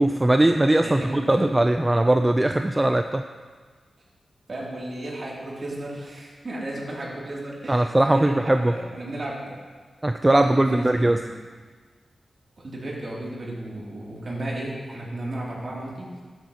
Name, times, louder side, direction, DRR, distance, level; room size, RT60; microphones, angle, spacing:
voice 1, 0.0-3.2 7.7-8.7 10.0-11.2, right 1 dB, 20° right, 7 dB, 0.3 m, -20 dB
voice 2, 0.8-1.5 4.5-9.5 10.4-11.3 12.6-16.2, right 1 dB, 50° right, -5 dB, 2.6 m, -34 dB
12.5 x 8.2 x 2.8 m, 1.5 s
wide cardioid pair, 85°, 0 cm